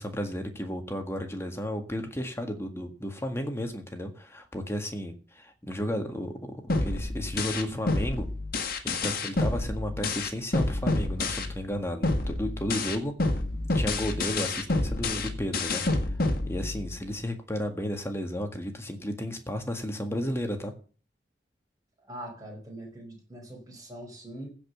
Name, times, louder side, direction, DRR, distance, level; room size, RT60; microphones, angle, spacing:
voice 1, 0.0-8.3 8.8-13.1 13.7-16.1 16.5-20.7, equal, 15° left, 1.8 m, -33 dB
sound 1, 6.7-11.7 12.0-17.1, left 2 dB, 60° left, 1.8 m, -28 dB
voice 2, 22.0-24.5, right 1 dB, 20° right, 5.3 m, -42 dB
15.5 x 5.3 x 7.0 m
head